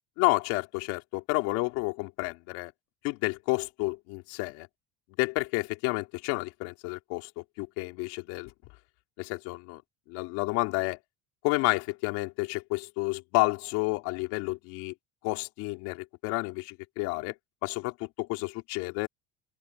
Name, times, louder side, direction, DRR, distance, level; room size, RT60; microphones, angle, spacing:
voice 1, 0.2-2.7 3.0-4.7 5.2-8.5 9.2-9.8 10.1-11.0 11.4-14.9 15.2-17.3 17.6-19.1, left 25 dB, 80° left, 3.7 m, -30 dB
open air
cardioid pair, 125°, 29 cm